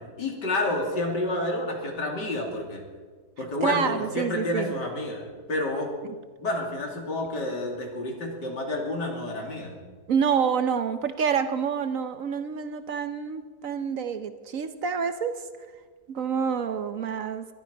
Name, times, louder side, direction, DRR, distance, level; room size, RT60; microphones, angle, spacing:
voice 1, 0.0-2.8 3.4-5.9 6.4-9.7, left 2 dB, 85° left, 1 dB, 3.4 m, -29 dB
voice 2, 3.6-4.7 10.1-15.4 16.1-17.5, right 7 dB, 60° right, 10 dB, 1.1 m, -27 dB
22.0 x 12.5 x 5.3 m, 1.5 s
omnidirectional pair, 1.8 m